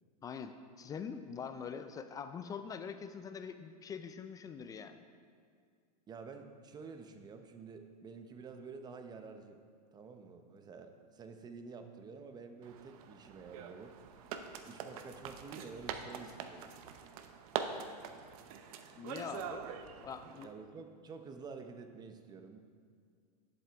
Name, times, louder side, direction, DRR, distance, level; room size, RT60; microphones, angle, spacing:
voice 1, 0.2-5.0 19.0-19.7 20.0-20.5, left 6 dB, 15° left, 10 dB, 0.3 m, -44 dB
voice 2, 6.1-9.6 9.9-14.0 14.7-16.7 20.4-22.6, right 4 dB, 20° right, 7 dB, 0.7 m, -49 dB
sound 1, 12.6-20.4, right 7 dB, 60° right, 0.8 m, -44 dB
11.5 x 7.5 x 3.5 m, 2.2 s
hypercardioid pair, 125°, 21 cm